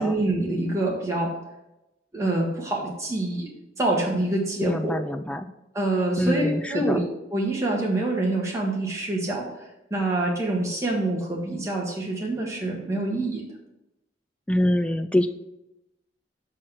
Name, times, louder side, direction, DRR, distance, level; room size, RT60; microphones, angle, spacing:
voice 1, 0.0-1.3 2.1-3.5 3.8-4.9 5.7-7.0 7.3-9.5 9.9-13.4, right 2 dB, 15° right, -2 dB, 1.5 m, -26 dB
voice 2, 4.6-5.5 6.2-7.0 14.5-15.3, left 1 dB, 5° left, 8 dB, 0.3 m, -25 dB
6.4 x 4.6 x 5.7 m, 0.92 s
head